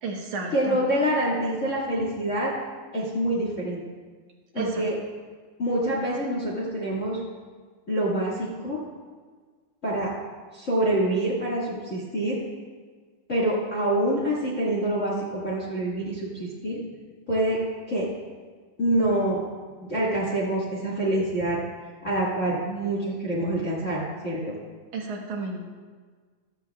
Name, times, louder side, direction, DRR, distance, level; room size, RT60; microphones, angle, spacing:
voice 1, 0.0-0.8 4.6-4.8 24.9-25.7, right 3 dB, 70° right, 0 dB, 2.4 m, -32 dB
voice 2, 0.5-2.5 2.9-3.8 4.5-4.9 5.6-7.2 7.9-8.8 9.8-10.1 10.5-12.4 13.3-16.8 17.3-17.6 17.9-18.1 18.8-19.4 19.8-21.6 22.0-24.5, right 1 dB, 30° left, -6 dB, 1.5 m, -26 dB
15.0 x 13.0 x 2.4 m, 1.5 s
omnidirectional pair, 3.8 m